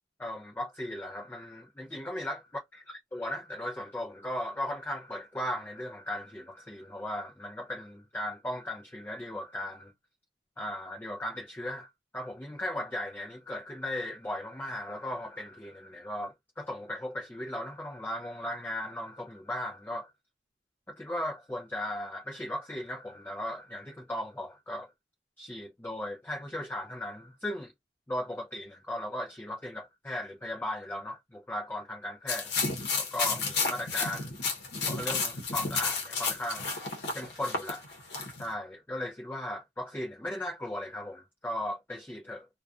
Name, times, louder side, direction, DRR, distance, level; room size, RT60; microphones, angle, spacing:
voice 1, 0.2-2.4 2.7-9.9 10.6-20.1 20.9-24.9 25.4-27.7 28.1-32.6 33.0-34.3 34.9-36.7 37.1-37.8 38.4-42.5, left 1 dB, 10° left, 0.3 m, -37 dB
sound 1, 32.3-38.5, left 4 dB, 75° left, 0.8 m, -31 dB
2.5 x 2.2 x 2.3 m
head